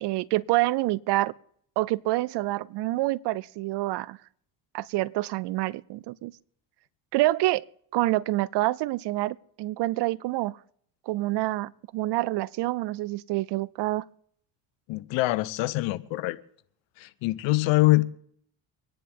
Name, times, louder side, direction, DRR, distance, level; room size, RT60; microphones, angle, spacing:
voice 1, 0.0-1.3 1.8-4.2 4.7-6.3 7.1-7.6 7.9-10.6 11.1-14.0, right 18 dB, 65° right, 0.6 m, -27 dB
voice 2, 14.9-16.4 17.0-18.0, left 20 dB, 80° left, 0.9 m, -24 dB
25.5 x 10.0 x 3.5 m
cardioid pair, 95°, 44 cm